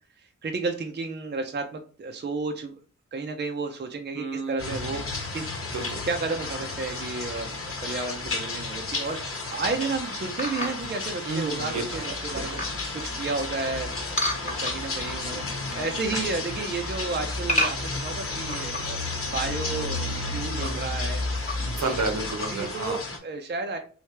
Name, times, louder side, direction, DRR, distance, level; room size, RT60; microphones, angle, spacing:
voice 1, 0.2-2.7 3.1-5.0 5.3-5.5 6.0-7.5 7.8-12.6 12.9-19.0 19.3-21.2 21.6-21.8 22.5-23.8, right 3 dB, 35° right, 4 dB, 0.5 m, -32 dB
voice 2, 4.1-4.9 5.7-6.0 11.2-12.4 20.6-20.9 21.6-23.0, right 3 dB, 70° right, 5 dB, 0.9 m, -32 dB
sound 1, 4.6-23.2, left 3 dB, 45° left, 1.0 m, -32 dB
sound 2, 9.1-9.4 10.4-11.0 11.6-11.7 12.1-12.8 14.2-15.0 15.4-15.9 16.2-16.6 17.5-19.0 19.4-19.5 19.7-19.8 20.4-20.7 21.3-21.8 22.2-22.5, left 1 dB, 25° left, 1.0 m, -31 dB
3.2 x 2.7 x 3.2 m, 0.40 s
cardioid pair, 75°, 31 cm